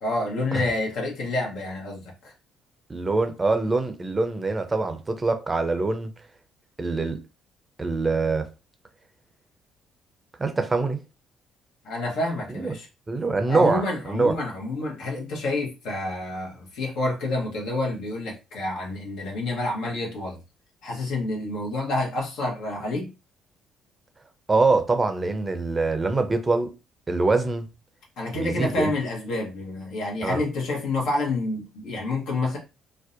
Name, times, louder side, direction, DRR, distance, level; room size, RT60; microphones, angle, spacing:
voice 1, 0.0-2.1 11.8-12.9 13.5-20.4 20.8-23.1 28.2-32.6, left 2 dB, 70° left, 0.9 m, -28 dB
voice 2, 2.9-6.1 6.8-7.2 7.8-8.5 10.4-11.0 12.5-12.7 13.1-14.4 24.5-26.7 27.1-27.7 28.3-28.9 30.2-30.4, right 3 dB, 30° right, 0.5 m, -24 dB
2.6 x 2.1 x 2.5 m
hypercardioid pair, 50°, 0 cm